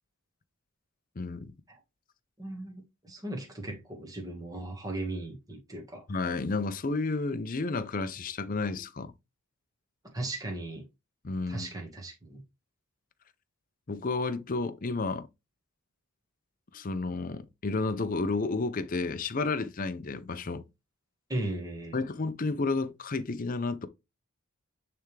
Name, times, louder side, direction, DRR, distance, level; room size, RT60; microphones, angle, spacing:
voice 1, 1.2-1.5 6.1-9.1 11.2-11.7 13.9-15.3 16.7-20.6 21.9-23.9, left 3 dB, 40° left, 0.5 m, -31 dB
voice 2, 2.4-2.8 3.1-6.0 10.1-10.8 11.5-12.4 21.3-22.0, right 2 dB, 15° right, 1.4 m, -37 dB
10.0 x 3.4 x 3.2 m
head